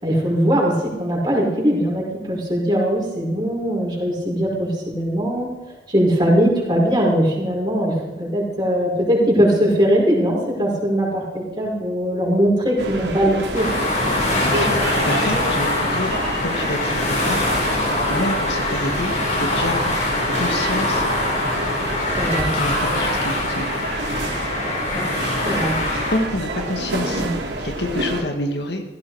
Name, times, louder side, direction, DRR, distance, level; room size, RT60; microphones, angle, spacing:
voice 1, 0.0-5.5 5.9-13.7 22.2-22.5 24.9-25.0 25.4-25.7 27.1-27.3, equal, 25° right, -3 dB, 5.3 m, -20 dB
sound 1, 12.8-28.2, right 2 dB, 85° right, 3.3 m, -28 dB
sound 2, 13.5-26.2, left 2 dB, 45° left, 4.4 m, -23 dB
voice 2, 14.1-17.6 18.1-20.0 20.4-21.1 22.5-23.8 26.1-27.3 27.6-28.8, left 1 dB, 75° left, 3 dB, 2.1 m, -28 dB
16.5 x 16.0 x 4.9 m, 1.1 s
head